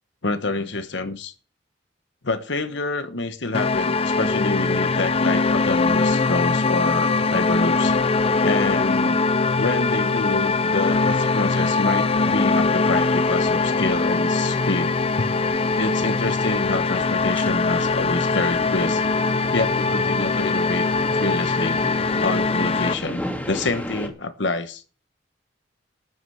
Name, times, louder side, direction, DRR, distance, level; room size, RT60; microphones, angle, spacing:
voice 1, 0.2-1.3 2.2-8.0 8.4-9.2 9.6-15.3 15.8-19.0 19.5-20.9 21.1-21.8 22.2-24.8, left 2 dB, 70° left, 1.2 m, -27 dB
sound 1, 3.5-22.9, left 3 dB, 30° left, 0.6 m, -21 dB
sound 2, 13.4-24.1, equal, 10° left, 2.4 m, -35 dB
13.0 x 8.1 x 7.8 m
head